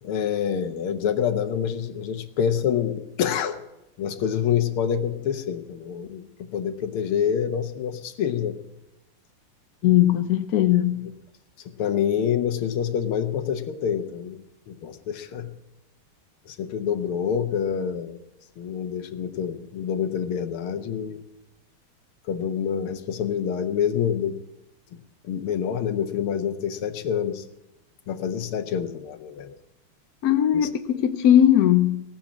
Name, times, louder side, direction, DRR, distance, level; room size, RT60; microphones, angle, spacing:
voice 1, 0.0-3.6 4.0-6.2 6.5-8.6 11.7-15.5 16.5-18.2 18.6-21.2 22.3-24.4 24.9-27.4 28.1-29.6 30.5-30.7, left 8 dB, 90° left, 8 dB, 1.9 m, -27 dB
voice 2, 9.8-11.1 30.2-32.0, left 11 dB, 65° left, 8 dB, 0.9 m, -19 dB
18.5 x 7.3 x 8.6 m, 0.96 s
omnidirectional pair, 2.3 m